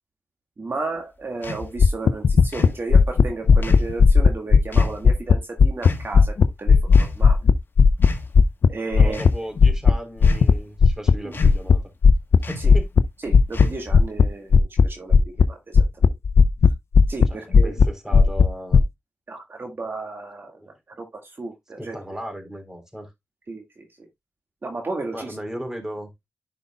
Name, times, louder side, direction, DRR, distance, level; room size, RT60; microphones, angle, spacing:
voice 1, 0.6-7.5 8.7-9.2 11.2-11.3 12.6-12.7 13.2-16.1 17.1-17.7 19.3-22.0 23.5-24.1 24.6-25.4, right 3 dB, 55° right, 1.8 m, -34 dB
sound 1, 1.4-1.7 2.5-2.8 3.6-3.9 4.7-5.0 5.8-6.1 6.9-7.5 8.0-8.3 9.0-9.4 10.2-10.6 11.3-11.7 12.4-12.8 13.5-14.0, left 2 dB, 50° left, 1.7 m, -33 dB
sound 2, 1.8-5.9 6.1-9.3 9.6-9.9 10.2-10.5 10.8-11.1 11.4-11.8 12.0-12.4 12.6-13.0 13.3-13.7 13.9-14.3 14.5-14.9 15.1-15.4 15.7-16.7 16.9-17.3 17.5-17.8 18.1-18.8, left 5 dB, 75° left, 0.5 m, -13 dB
voice 2, 9.0-11.8 12.5-12.9 17.3-18.8 20.6-20.7 21.8-23.1 25.1-26.1, equal, 10° right, 3.7 m, -36 dB
10.5 x 5.4 x 2.2 m
cardioid pair, 45°, 5 cm